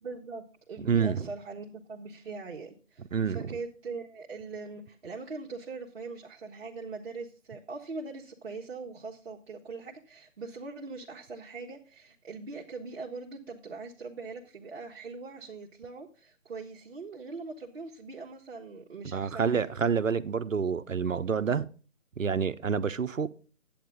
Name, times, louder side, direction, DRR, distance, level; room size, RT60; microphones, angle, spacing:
voice 1, 0.0-19.7, right 4 dB, 50° right, 1.3 m, -41 dB
voice 2, 0.8-1.3 3.1-3.6 19.1-21.7 22.2-23.3, right 6 dB, 75° right, 0.8 m, -28 dB
10.0 x 8.8 x 3.6 m
figure-of-eight pair, 150°, 39 cm